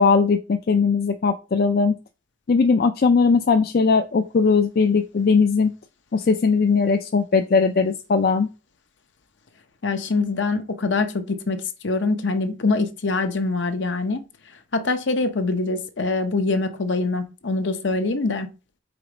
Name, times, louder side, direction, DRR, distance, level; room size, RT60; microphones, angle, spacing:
voice 1, 0.0-2.0 2.5-5.7 6.1-8.5, left 4 dB, 50° left, 0.4 m, -19 dB
voice 2, 9.8-11.6 11.8-14.2 14.7-18.5, left 3 dB, 70° left, 0.8 m, -24 dB
5.0 x 4.0 x 4.9 m
head